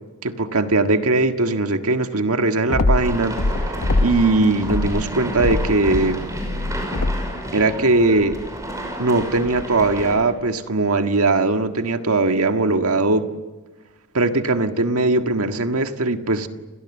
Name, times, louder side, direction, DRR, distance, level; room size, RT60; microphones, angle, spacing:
voice 1, 0.2-6.2 7.5-8.4 9.0-13.3 14.1-16.5, right 2 dB, 80° right, 6 dB, 1.7 m, -20 dB
sound 1, 2.7-4.3 4.6-7.4, left 2 dB, 80° left, 0.9 m, -23 dB
sound 2, 3.0-10.1, right 1 dB, 15° right, 6.0 m, -31 dB
29.5 x 27.5 x 7.3 m, 1.2 s
head